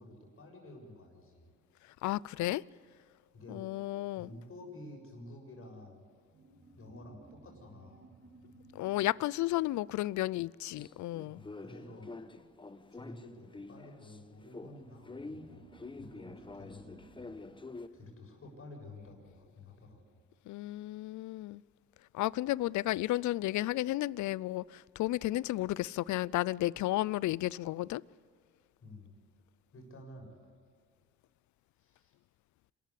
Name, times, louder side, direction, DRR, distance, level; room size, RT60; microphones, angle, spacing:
voice 1, 0.0-1.5 3.3-3.7 4.2-6.0 6.8-8.1 11.2-12.1 12.9-15.7 16.0-17.5 17.9-20.0 28.8-29.2 29.7-30.3 31.8-32.1, left 2 dB, 45° left, 7.2 m, -51 dB
voice 2, 2.0-2.6 3.5-4.3 8.8-11.4 20.5-21.6 22.1-28.0, left 16 dB, 70° left, 0.5 m, -33 dB
sound 1, 6.3-11.3 14.6-19.5, right 2 dB, 40° right, 3.3 m, -60 dB
sound 2, 10.8-14.2 14.5-17.9, left 3 dB, 15° left, 1.0 m, -47 dB
26.0 x 13.5 x 8.3 m
cardioid pair, 90°, 30 cm